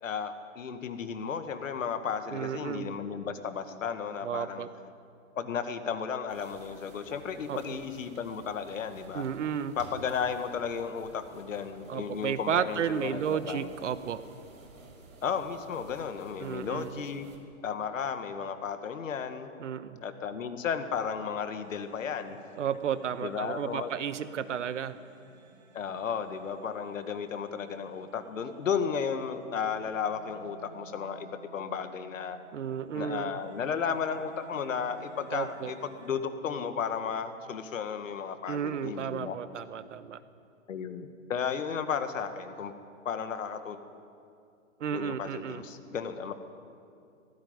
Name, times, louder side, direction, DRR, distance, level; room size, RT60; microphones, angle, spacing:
voice 1, 0.0-4.7 5.4-9.2 9.8-13.7 15.2-17.3 17.6-19.5 20.0-22.4 23.2-23.9 25.7-32.4 32.9-39.4 40.7-42.7 43.1-43.8 44.9-46.3, left 6 dB, 70° left, 9 dB, 2.0 m, -34 dB
voice 2, 2.3-2.9 4.2-4.7 7.5-7.8 9.1-9.8 11.9-14.2 16.4-16.9 19.6-20.0 22.5-25.0 32.5-33.4 35.3-35.7 38.5-40.2 44.8-45.6, right 8 dB, 60° right, 13 dB, 1.2 m, -33 dB
sound 1, 6.3-17.4, right 2 dB, 85° right, 5.5 m, -52 dB
sound 2, 21.6-36.2, right 4 dB, 30° right, 2.0 m, -53 dB
17.5 x 16.0 x 9.6 m, 2.5 s
hypercardioid pair, 170°, 41 cm